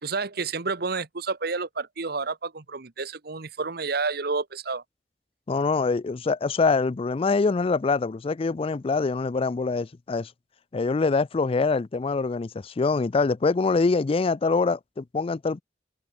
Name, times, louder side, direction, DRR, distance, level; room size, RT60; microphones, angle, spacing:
voice 1, 0.0-4.8, right 4 dB, 65° right, 1.3 m, -30 dB
voice 2, 5.5-10.3 10.7-15.6, left 4 dB, 35° left, 0.4 m, -24 dB
head